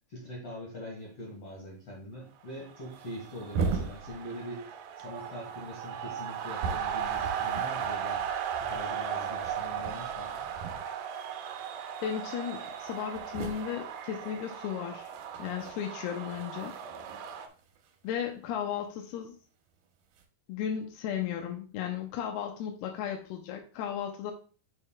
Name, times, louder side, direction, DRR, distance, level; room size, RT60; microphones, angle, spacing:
voice 1, 0.1-4.7 5.0-8.2 8.6-10.3, left 1 dB, 50° left, -3 dB, 2.1 m, -43 dB
sound 1, 1.1-1.3 1.5-1.6 2.3-2.5 2.8-4.7 5.0-11.3 11.5-11.9 12.3-12.4 12.5-18.9 19.7-20.2, right 4 dB, 70° right, 2.5 m, -40 dB
sound 2, 2.7-17.5, right 8 dB, 90° right, 1.8 m, -37 dB
voice 2, 12.0-15.1 15.4-16.8 18.0-19.4 20.5-24.3, left 9 dB, 85° left, 3 dB, 2.7 m, -35 dB
7.4 x 6.5 x 2.2 m, 0.38 s
omnidirectional pair, 4.6 m